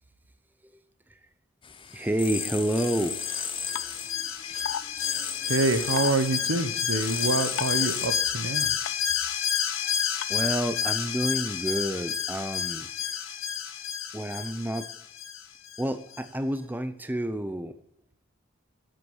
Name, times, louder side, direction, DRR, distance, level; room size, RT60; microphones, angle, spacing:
sound 1, 1.6-8.1, left 7 dB, 25° left, 0.8 m, -36 dB
voice 1, 1.9-3.2 10.3-13.2 14.1-14.9 15.8-17.8, right 1 dB, 10° right, 11 dB, 0.6 m, -29 dB
Alarm, 2.3-15.8 16.1-16.2, left 9 dB, 70° left, 1.0 m, -30 dB
sound 2, 3.8-3.9 4.7-4.8 6.0-6.1 7.6-7.8 8.9-9.0 10.2-10.3, left 8 dB, 85° left, 0.5 m, -31 dB
voice 2, 5.4-8.7, right 3 dB, 75° right, 10 dB, 1.1 m, -26 dB
8.3 x 7.9 x 7.1 m, 0.76 s
head